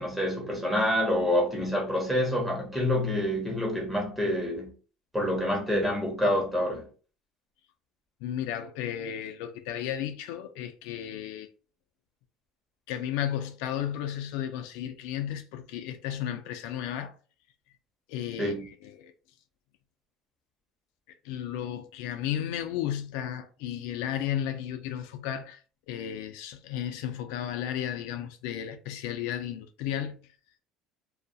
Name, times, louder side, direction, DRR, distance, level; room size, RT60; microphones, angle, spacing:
voice 1, 0.0-4.7 5.1-6.8 18.4-18.6, left 1 dB, 10° right, 0.9 m, -27 dB
voice 2, 8.2-11.5 12.9-17.1 18.1-18.5 18.8-19.1 21.2-25.6 25.9-30.1, left 10 dB, 80° left, 0.3 m, -33 dB
2.3 x 2.1 x 2.6 m
supercardioid pair, 115°, 0 cm